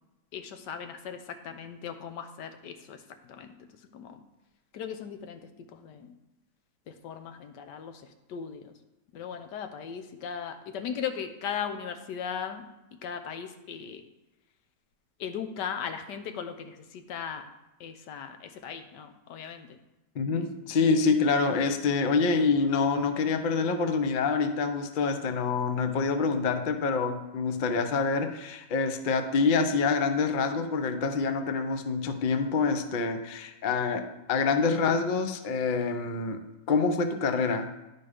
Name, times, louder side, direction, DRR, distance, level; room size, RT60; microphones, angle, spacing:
voice 1, 0.3-1.2 1.4-3.0 3.4-3.5 3.9-4.2 4.7-5.4 5.7-6.1 6.9-7.9 8.3-8.7 9.1-12.6 13.0-14.0 15.2-17.4 17.8-19.7, left 7 dB, 85° left, 7 dB, 1.4 m, -37 dB
voice 2, 20.1-36.4 36.7-37.7, left 4 dB, 60° left, 8 dB, 0.5 m, -26 dB
11.0 x 4.4 x 5.0 m, 1.0 s
omnidirectional pair, 1.8 m